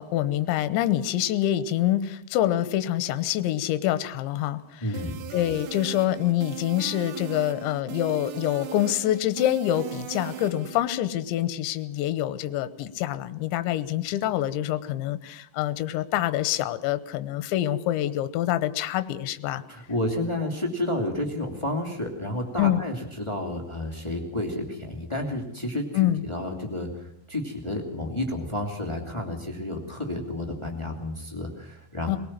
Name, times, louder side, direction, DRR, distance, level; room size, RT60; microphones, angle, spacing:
voice 1, 0.0-5.0 5.3-19.6 22.6-22.8 25.9-26.2 32.1-32.2, left 13 dB, 75° left, 13 dB, 3.1 m, -26 dB
voice 2, 4.8-5.2 19.7-32.2, left 1 dB, 20° left, 2 dB, 0.7 m, -31 dB
sound 1, 4.9-10.8, right 11 dB, 85° right, 4.1 m, -38 dB
23.0 x 18.5 x 7.4 m, 0.77 s
omnidirectional pair, 5.7 m